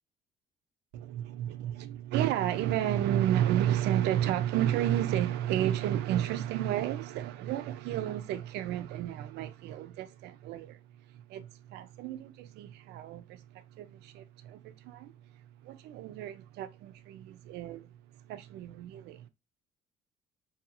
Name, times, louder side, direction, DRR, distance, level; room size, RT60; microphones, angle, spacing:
voice 1, 0.9-10.8 11.1-15.1 15.6-17.9 18.3-19.3, right 12 dB, 80° right, 0.4 m, -32 dB
2.6 x 2.3 x 2.7 m
cardioid pair, 110°, 17 cm